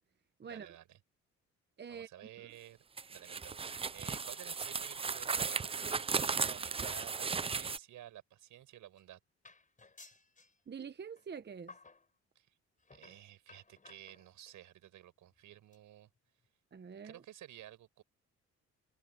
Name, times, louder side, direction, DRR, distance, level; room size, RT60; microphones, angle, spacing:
voice 1, 0.4-1.0 1.9-2.8 3.1-9.2 12.4-12.5 12.9-16.1 17.0-18.0, right 12 dB, 80° right, 7.1 m, -53 dB
voice 2, 1.8-2.1 2.4-2.5 10.7-11.8 16.7-17.2, right 6 dB, 35° right, 1.1 m, -46 dB
sound 1, 3.0-7.8, right 5 dB, 20° right, 0.4 m, -36 dB
sound 2, 3.7-4.3 4.6-4.9 5.3-5.4 6.2-7.3 7.6-7.8 8.6-8.7 9.0-9.2 9.4-10.6 11.2-11.3 11.7-12.1 12.8-14.6 15.3-15.4 15.7-15.8 16.2-16.3 16.4-16.5, left 4 dB, 25° left, 5.1 m, -59 dB
cardioid pair, 90°, 30 cm